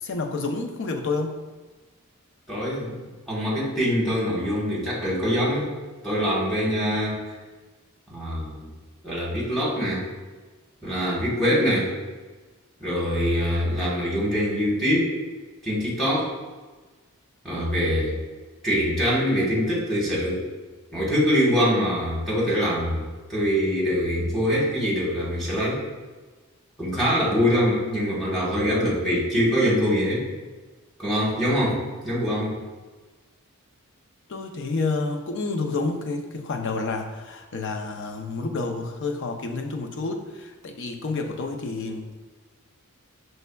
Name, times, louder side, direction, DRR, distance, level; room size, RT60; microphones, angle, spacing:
voice 1, 0.0-1.4 34.3-42.1, left 3 dB, 55° left, 4 dB, 0.5 m, -29 dB
voice 2, 2.5-2.9 3.3-5.7 6.0-7.2 8.1-8.7 9.0-10.1 10.8-11.9 12.8-15.1 15.6-16.3 17.4-18.1 18.6-20.4 20.9-25.8 26.8-30.2 31.0-31.8 32.0-32.5, equal, ahead, -7 dB, 1.1 m, -24 dB
5.4 x 3.3 x 2.2 m, 1.3 s
head